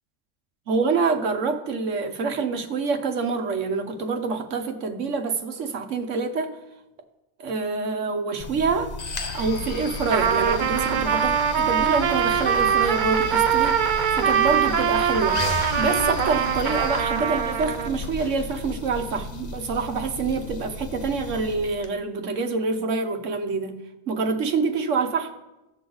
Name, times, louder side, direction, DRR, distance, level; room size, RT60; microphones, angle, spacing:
voice 1, 0.7-6.5 7.4-8.9 9.3-23.8 24.1-25.3, right 4 dB, 75° right, 5 dB, 1.3 m, -26 dB
sound 1, 8.4-21.9, left 4 dB, 40° left, 0.7 m, -34 dB
Trumpet, 10.0-17.9, right 8 dB, 60° right, 0.5 m, -23 dB
17.5 x 6.9 x 3.9 m, 1.0 s
omnidirectional pair, 1.3 m